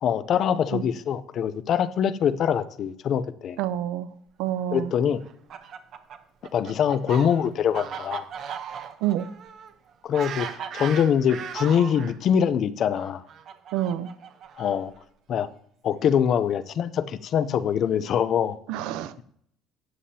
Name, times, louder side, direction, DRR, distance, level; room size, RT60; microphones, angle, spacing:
voice 1, 0.0-3.6 4.7-5.2 6.5-8.2 10.0-13.2 14.6-14.9 15.3-15.5 15.8-18.6, left 8 dB, 40° left, 14 dB, 0.5 m, -24 dB
voice 2, 3.6-4.1 4.4-4.9 9.0-9.3 13.7-14.1 18.7-19.2, right 12 dB, 80° right, 14 dB, 0.7 m, -27 dB
Fowl, 5.2-12.1 12.9-15.0, right 8 dB, 45° right, 0.8 m, -37 dB
12.5 x 8.5 x 2.8 m, 0.66 s
cardioid pair, 165°, 0 cm